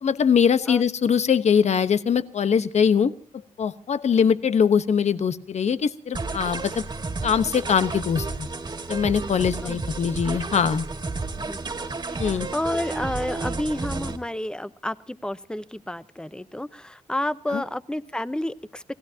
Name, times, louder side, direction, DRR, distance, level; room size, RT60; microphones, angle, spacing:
voice 1, 0.0-3.1 3.6-6.8 7.2-8.5 8.9-10.9 12.2-12.5 17.5-17.6, left 7 dB, 55° left, 12 dB, 1.0 m, -22 dB
sound 1, 6.1-14.2, right 3 dB, 30° right, 2.1 m, -32 dB
voice 2, 11.4-11.8 12.0-18.8, left 1 dB, 5° left, 14 dB, 0.8 m, -30 dB
28.5 x 18.0 x 2.8 m, 0.42 s
wide cardioid pair, 130°, 14 cm